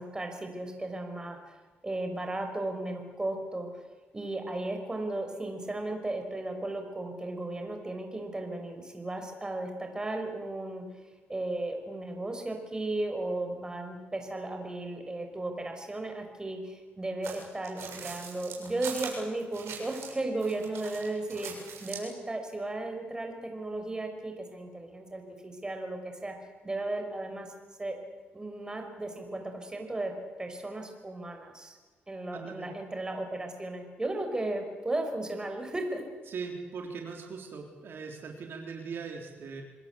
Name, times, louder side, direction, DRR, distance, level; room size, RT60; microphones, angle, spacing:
voice 1, 0.0-1.4 1.8-3.8 4.1-10.8 11.3-26.4 26.6-27.5 27.8-28.0 28.3-30.1 30.4-31.8 32.1-36.1, right 2 dB, 15° right, 4 dB, 5.5 m, -35 dB
sound 1, 17.2-20.1 20.4-22.1, right 6 dB, 85° right, 6.9 m, -42 dB
voice 2, 32.3-32.7 36.3-39.6, right 5 dB, 60° right, 2 dB, 3.7 m, -40 dB
27.0 x 20.5 x 8.3 m, 1.3 s
cardioid pair, 100°, 4 cm